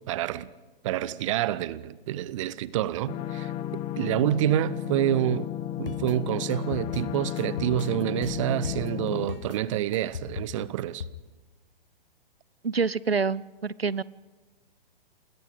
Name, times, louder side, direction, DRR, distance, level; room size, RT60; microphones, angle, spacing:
voice 1, 0.1-0.5 0.8-5.5 5.8-11.0, right 13 dB, 35° right, 0.9 m, -28 dB
sound 1, 3.1-9.2, left 12 dB, 20° left, 1.0 m, -33 dB
sound 2, 5.9-11.1, left 6 dB, 65° left, 1.5 m, -37 dB
voice 2, 12.6-14.0, right 5 dB, 85° right, 0.7 m, -27 dB
28.5 x 21.0 x 5.1 m
figure-of-eight pair, 120°, 29 cm